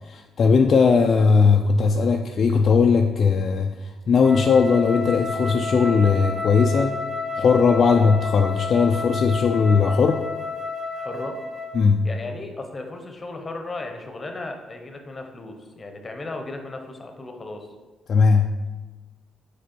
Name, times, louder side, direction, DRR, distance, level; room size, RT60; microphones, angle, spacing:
voice 1, 0.1-3.7 4.1-7.0 7.4-10.2 11.7-12.1 18.1-18.6, left 5 dB, 55° left, 3 dB, 0.3 m, -18 dB
Wind instrument woodwind instrument, 4.2-11.8, left 3 dB, ahead, 1.6 m, -31 dB
voice 2, 10.9-11.3 12.0-17.7, left 2 dB, 30° left, 4 dB, 0.8 m, -35 dB
5.0 x 4.4 x 4.4 m, 1.3 s
cardioid pair, 90°, 0 cm